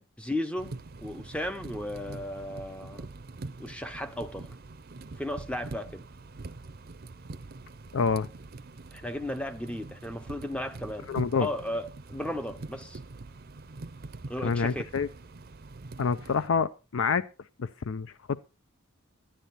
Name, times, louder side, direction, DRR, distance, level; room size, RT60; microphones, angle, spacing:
voice 1, 0.0-3.1 3.6-4.5 5.2-6.0 8.9-11.1 11.4-13.0 14.3-14.9, left 1 dB, 5° left, 0.6 m, -35 dB
sound 1, 0.6-16.5, right 3 dB, 45° right, 0.6 m, -44 dB
voice 2, 7.9-8.3 11.1-11.5 14.4-15.1 16.0-17.2 17.6-18.1, left 5 dB, 65° left, 0.4 m, -27 dB
11.0 x 10.0 x 4.1 m
head